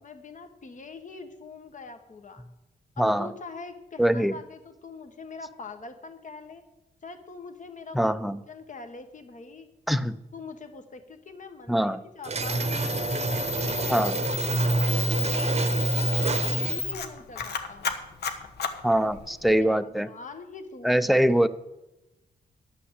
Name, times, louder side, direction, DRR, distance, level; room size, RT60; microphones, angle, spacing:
voice 1, 0.0-2.4 3.0-6.6 7.0-9.7 10.3-12.6 13.0-17.9 19.0-21.4, left 4 dB, 45° left, 7 dB, 1.4 m, -44 dB
voice 2, 3.0-3.3 4.0-4.4 7.9-8.4 9.9-10.2 11.7-12.0 13.9-14.2 18.8-20.1 20.8-21.5, right 1 dB, ahead, 12 dB, 0.6 m, -23 dB
sound 1, 12.2-17.0, right 3 dB, 40° right, 0.9 m, -27 dB
Camera, 12.4-19.6, left 6 dB, 70° left, 1.2 m, -33 dB
11.0 x 5.8 x 8.1 m, 0.96 s
cardioid pair, 75°, 17 cm